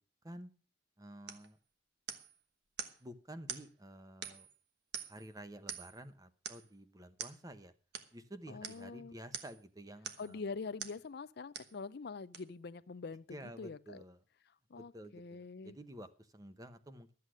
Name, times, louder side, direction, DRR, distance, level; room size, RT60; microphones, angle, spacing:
voice 1, 1.0-1.6 3.0-4.5 5.1-7.7 8.1-10.4 13.3-14.2 14.7-17.1, right 1 dB, 20° right, 0.9 m, -51 dB
sound 1, 1.3-1.5 2.1-2.4 2.8-3.0 3.5-3.7 4.2-4.5 4.9-5.3 5.7-6.0 6.4-6.7 7.2-7.4 7.9-8.1 8.6-8.8 9.3-9.6 10.0-10.3 10.8-11.0 11.5-11.8 12.3-12.4, right 7 dB, 55° right, 1.3 m, -44 dB
voice 2, 8.5-9.1 10.2-13.2 13.6-14.0 14.7-15.8, left 4 dB, 55° left, 0.5 m, -44 dB
13.0 x 8.2 x 6.3 m
head